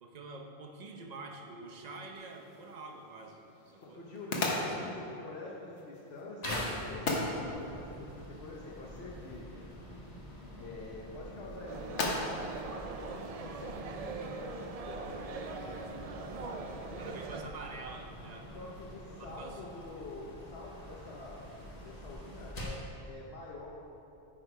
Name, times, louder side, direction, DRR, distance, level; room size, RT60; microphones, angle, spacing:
voice 1, 0.0-3.4 3.7-4.0 4.5-4.8 17.0-18.5 19.2-19.6, right 3 dB, 40° right, 1 dB, 0.8 m, -46 dB
sound 1, 2.2-13.9, left 2 dB, 90° left, 1.3 m, -40 dB
voice 2, 3.8-9.7 10.6-15.8 16.4-17.2 18.5-21.4 21.8-23.7, left 2 dB, 70° left, -3 dB, 1.1 m, -46 dB
sound 2, 6.4-22.9, equal, 35° left, 1.3 m, -45 dB
sound 3, 11.7-17.4, right 4 dB, 60° right, 0.4 m, -42 dB
8.9 x 5.1 x 4.8 m, 2.9 s
omnidirectional pair, 1.1 m